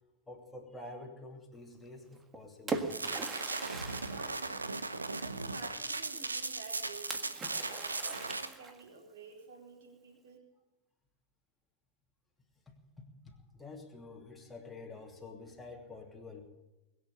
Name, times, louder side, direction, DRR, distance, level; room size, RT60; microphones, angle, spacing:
voice 1, 0.3-2.9 12.7-16.5, left 2 dB, 5° left, -1 dB, 2.8 m, -48 dB
Splash splatter, 2.1-5.3 7.1-9.0, right 4 dB, 20° right, 1.7 m, -41 dB
sound 1, 2.9-8.4, right 3 dB, 80° right, 1.0 m, -37 dB
voice 2, 4.1-4.7 5.1-7.3 7.6-10.5, right 5 dB, 55° right, -1 dB, 4.5 m, -51 dB
21.5 x 7.4 x 8.9 m, 1.0 s
figure-of-eight pair, 90°, 0 cm